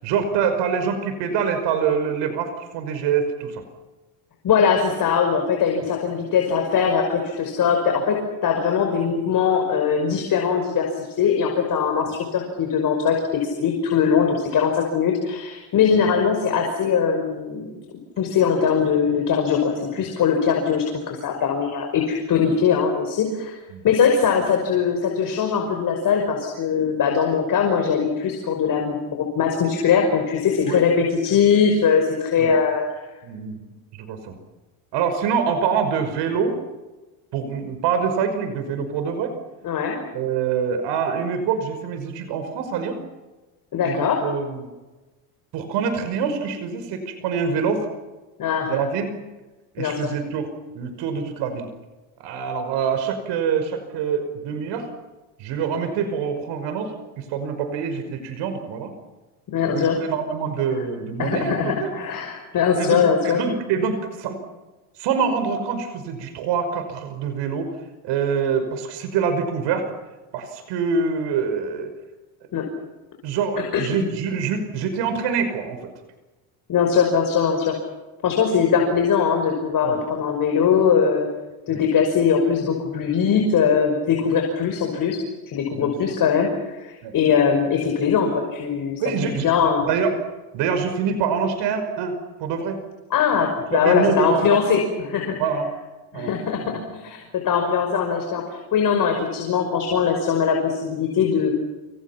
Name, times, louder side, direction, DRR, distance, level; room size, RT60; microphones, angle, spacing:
voice 1, 0.0-3.6 19.9-20.1 23.7-23.9 30.6-30.8 32.4-32.5 33.2-33.6 34.0-34.4 34.9-36.6 37.3-39.3 40.1-43.0 43.8-44.7 45.5-47.9 48.7-49.2 49.7-50.5 50.7-51.7 52.2-54.9 55.4-58.9 59.6-61.9 62.7-64.4 65.0-67.7 68.0-69.9 70.3-71.9 73.2-75.9 79.8-80.0 81.7-81.8 85.7-85.9 87.0-87.1 89.0-90.2 90.5-92.1 92.4-92.8 93.7-94.6 95.4-95.7 96.1-96.3 96.8-96.9, right 6 dB, 65° right, 8 dB, 5.6 m, -25 dB
voice 2, 4.4-8.2 8.4-13.2 13.4-17.7 18.2-23.6 23.8-32.8 39.6-40.0 43.7-44.2 48.4-48.8 49.8-50.1 59.5-60.0 61.2-63.4 72.5-72.6 73.7-74.1 76.7-77.8 78.2-81.3 81.7-85.2 85.5-89.0 89.3-89.9 93.1-95.4 96.1-101.5, left 6 dB, 45° left, 3 dB, 5.6 m, -21 dB
29.0 x 26.5 x 5.9 m, 1.2 s
supercardioid pair, 105°, 45 cm